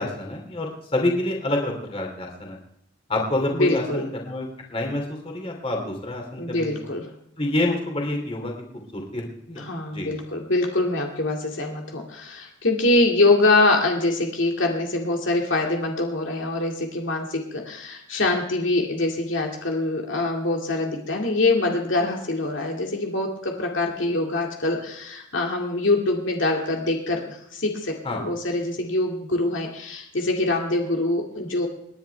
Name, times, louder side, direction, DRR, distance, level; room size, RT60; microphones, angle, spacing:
voice 1, 0.0-2.6 3.1-6.8 7.4-8.5 8.9-9.6 9.9-10.1 28.0-28.2, left 1 dB, 30° left, 1 dB, 2.8 m, -27 dB
voice 2, 3.5-4.0 6.4-7.1 9.6-31.7, left 2 dB, 75° left, 0 dB, 2.2 m, -24 dB
27.5 x 10.5 x 3.4 m, 0.74 s
head